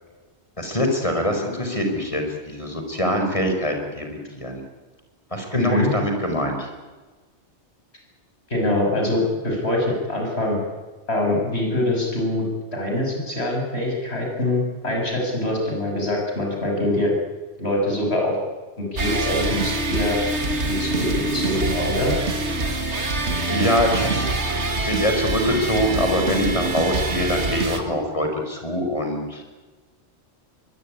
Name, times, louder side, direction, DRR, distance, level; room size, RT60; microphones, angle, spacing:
voice 1, 0.6-4.6 5.3-6.7 23.5-24.2 24.9-29.4, equal, 30° left, 4 dB, 5.1 m, -24 dB
voice 2, 5.5-5.9 8.5-10.6 11.1-12.5 12.7-17.1 17.6-18.4 18.8-20.2 20.7-22.2, left 1 dB, 70° left, 0 dB, 7.9 m, -24 dB
sound 1, 19.0-27.8, right 2 dB, 85° right, 2.6 m, -25 dB
23.5 x 21.5 x 9.8 m, 1.3 s
omnidirectional pair, 1.1 m